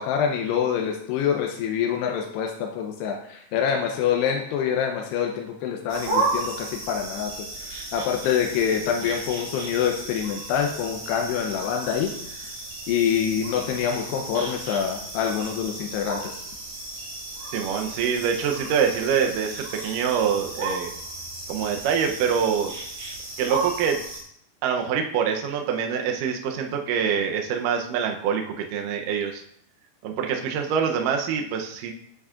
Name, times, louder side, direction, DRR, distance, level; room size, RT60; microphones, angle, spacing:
voice 1, 0.0-7.3 7.7-12.1 12.4-12.5 12.9-16.3, left 8 dB, 80° left, 2 dB, 2.8 m, -26 dB
sound 1, 5.9-24.2, right 2 dB, 60° right, 4.4 m, -34 dB
voice 2, 17.5-20.9 21.5-22.7 23.4-24.0 24.6-29.4 30.0-31.9, right 7 dB, 80° right, 3 dB, 1.9 m, -25 dB
9.2 x 8.4 x 2.5 m, 0.67 s
omnidirectional pair, 4.8 m